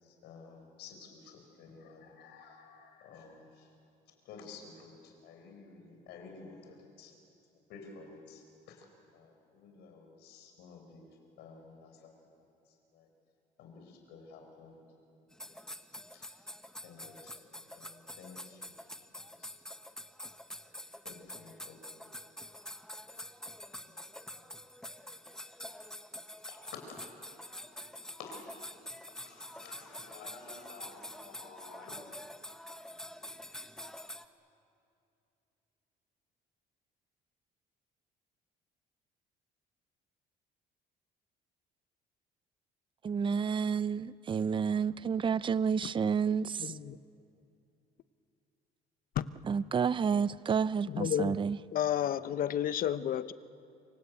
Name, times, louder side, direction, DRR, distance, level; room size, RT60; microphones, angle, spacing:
voice 1, 0.0-3.7 4.2-7.1 7.7-8.9 9.1-11.1 11.4-12.1 12.7-13.1 13.6-14.8 15.4-15.6 16.1-16.4 16.8-17.4 17.7-18.8 19.2-19.5 21.0-22.2 23.7-24.0 24.3-24.6 25.0-25.4 26.4-28.5 29.2-32.1, left 4 dB, 85° left, 3 dB, 5.4 m, -52 dB
sound 1, 15.3-34.2, left 1 dB, 5° left, 1.3 m, -47 dB
voice 2, 43.0-46.8 49.4-51.6, right 6 dB, 30° right, 17 dB, 0.6 m, -30 dB
voice 3, 46.6-47.0 49.2-49.3 50.9-51.4 51.7-53.3, left 10 dB, 55° left, 13 dB, 0.9 m, -31 dB
27.5 x 24.0 x 8.5 m, 2.7 s
cardioid pair, 110°, 17 cm